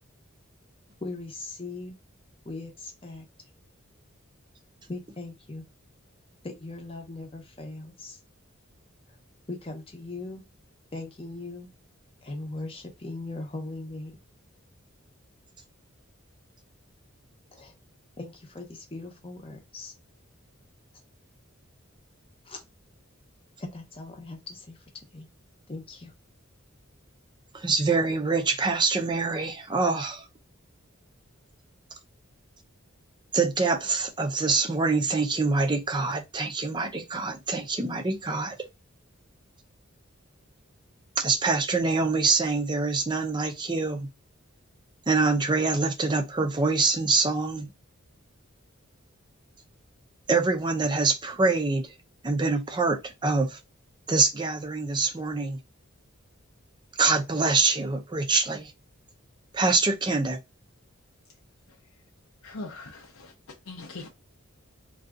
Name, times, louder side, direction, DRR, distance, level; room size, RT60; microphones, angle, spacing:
voice 1, 1.0-2.0 2.4-3.3 4.9-5.6 6.4-8.2 9.5-10.4 10.9-11.7 12.2-14.2 17.5-17.7 18.2-19.9 22.5-22.6 23.6-24.8 25.1-25.3 25.7-26.1, left 2 dB, 25° left, 0.8 m, -39 dB
voice 2, 27.5-30.3 33.3-38.6 41.2-44.1 45.1-47.7 50.3-51.9 52.2-53.6 54.1-55.6 57.0-58.7 59.5-60.4, right 3 dB, 20° right, 0.5 m, -25 dB
voice 3, 62.4-64.1, left 2 dB, 85° left, 0.7 m, -41 dB
2.7 x 2.4 x 3.5 m
head